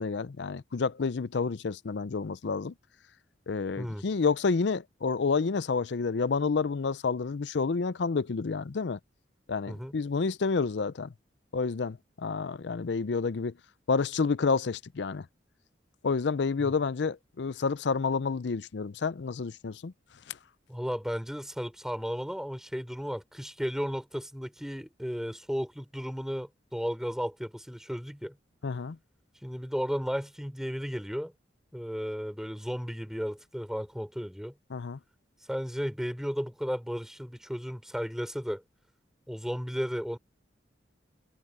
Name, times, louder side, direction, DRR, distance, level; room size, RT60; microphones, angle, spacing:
voice 1, 0.0-2.7 3.5-9.0 9.5-11.1 11.5-13.5 13.9-15.3 16.0-19.9 20.3-20.4 28.6-29.0 34.7-35.0, left 4 dB, 70° left, 0.5 m, -29 dB
voice 2, 3.8-4.1 9.7-10.0 16.6-16.7 20.7-28.4 29.4-31.3 31.7-34.5 35.5-38.6 39.3-40.2, equal, 5° right, 4.0 m, -34 dB
head